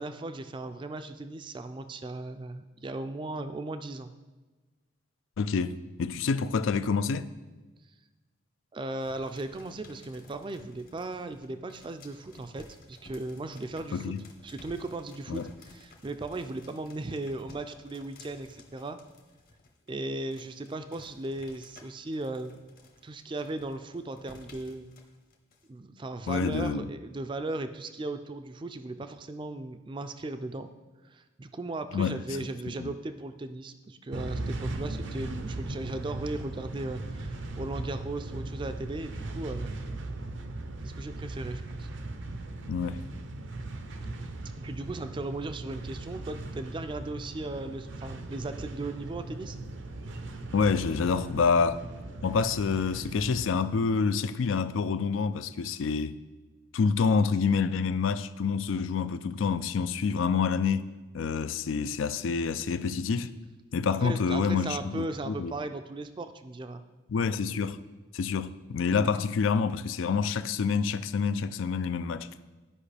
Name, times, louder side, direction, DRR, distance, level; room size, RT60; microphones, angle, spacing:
voice 1, 0.0-4.1 8.7-14.2 14.4-19.0 19.9-22.6 23.0-24.9 25.7-30.7 31.1-39.7 40.8-41.9 44.6-49.6 64.0-66.8, right 2 dB, 25° right, 0.4 m, -37 dB
voice 2, 5.4-7.3 13.9-14.2 15.3-15.5 26.3-26.9 31.9-32.2 32.8-32.9 42.7-43.0 50.5-51.8 52.2-56.1 56.7-63.3 63.7-65.5 67.1-67.8 68.1-72.3, left 5 dB, 80° left, 0.4 m, -27 dB
sound 1, 9.0-19.9 20.3-25.7, left 2 dB, 50° left, 1.0 m, -54 dB
sound 2, 34.1-53.5, right 2 dB, 70° right, 0.6 m, -38 dB
12.5 x 5.1 x 3.3 m
head